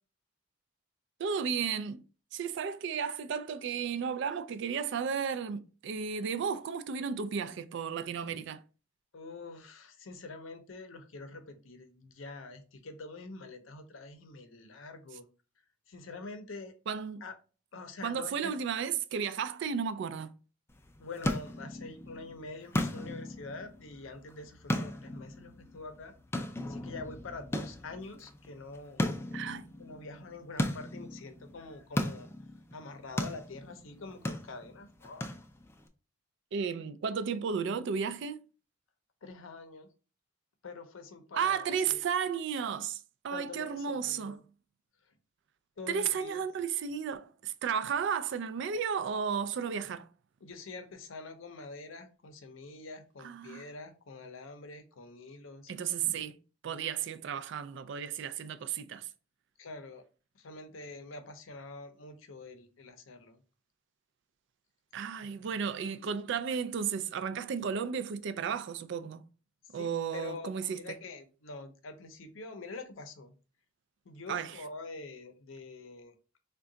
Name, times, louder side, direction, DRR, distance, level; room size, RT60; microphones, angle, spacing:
voice 1, 1.2-2.0 2.3-8.6 16.9-17.2 18.0-20.3 29.3-29.7 36.5-38.4 41.3-44.4 45.9-50.1 53.2-53.7 55.7-56.4 56.6-59.1 64.9-69.3 69.7-70.8 74.3-74.6, right 7 dB, 65° right, 0.3 m, -33 dB
voice 2, 9.1-15.3 15.9-16.7 17.2-17.3 17.7-18.5 21.0-26.1 26.7-29.1 29.8-32.3 32.7-35.3 39.2-39.9 40.6-42.0 43.3-44.4 45.8-46.4 50.4-55.7 59.6-60.0 60.3-63.4 65.4-65.6 69.7-73.3 74.1-76.1, left 3 dB, 80° left, 0.6 m, -45 dB
sound 1, 20.7-35.9, left 1 dB, 15° left, 0.4 m, -37 dB
3.6 x 2.2 x 3.8 m
head